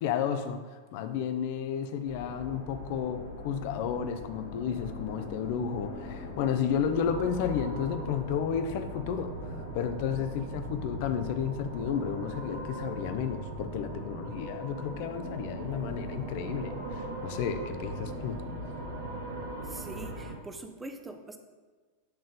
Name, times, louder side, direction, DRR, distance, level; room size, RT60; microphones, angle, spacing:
voice 1, 0.0-18.4, left 7 dB, 50° left, 8 dB, 0.5 m, -32 dB
sound 1, 2.0-19.2, left 3 dB, 65° left, 1.7 m, -44 dB
sound 2, 6.9-20.3, right 1 dB, 55° right, 1.1 m, -40 dB
voice 2, 19.6-21.4, right 2 dB, 10° right, 6 dB, 0.6 m, -43 dB
7.8 x 3.8 x 3.9 m, 1.4 s
figure-of-eight pair, 90°, 0 cm